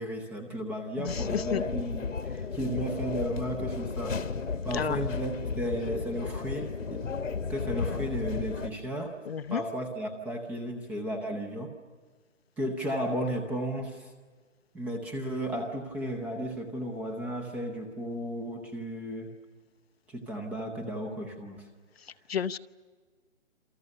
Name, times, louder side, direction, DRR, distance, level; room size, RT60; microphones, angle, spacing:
voice 1, 0.0-4.2 4.6-7.0 7.5-9.2 9.5-11.7 12.6-14.1 14.7-19.3 20.1-21.7, equal, 5° right, 5 dB, 0.7 m, -34 dB
voice 2, 1.0-1.6 4.7-5.0 9.3-9.6 22.3-22.6, left 8 dB, 50° left, 13 dB, 0.8 m, -31 dB
sound 1, 1.1-8.7, left 5 dB, 75° left, 1.7 m, -34 dB
27.5 x 27.5 x 6.7 m, 1.5 s
figure-of-eight pair, 150°, 39 cm